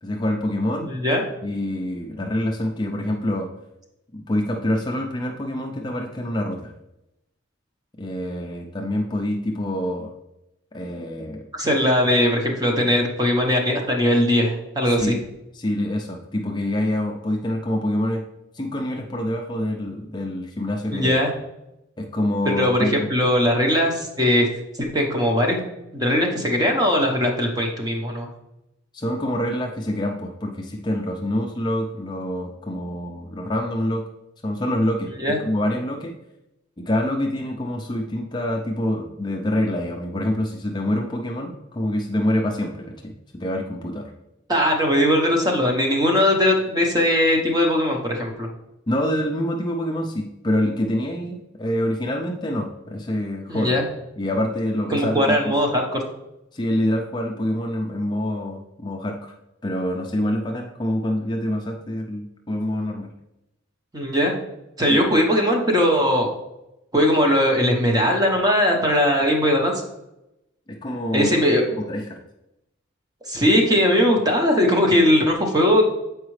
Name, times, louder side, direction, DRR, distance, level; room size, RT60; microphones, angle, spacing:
voice 1, 0.0-0.9 1.4-3.5 4.1-6.7 8.0-10.1 10.7-11.4 15.0-15.2 15.5-18.2 18.5-21.2 22.0-23.1 28.9-34.0 34.4-36.2 36.8-44.1 48.9-53.8 54.2-55.5 56.5-59.3 59.6-63.1 70.7-71.3 71.7-72.2, left 1 dB, 20° left, 1 dB, 0.5 m, -26 dB
voice 2, 0.8-1.2 11.5-15.1 20.9-21.3 22.4-24.5 24.8-25.6 25.9-28.3 35.2-35.4 44.5-48.5 53.5-53.8 54.9-56.0 63.9-64.3 64.8-66.3 66.9-69.7 71.1-71.6 73.3-75.8, equal, 20° right, 1 dB, 0.9 m, -19 dB
7.3 x 4.8 x 3.2 m, 0.90 s
head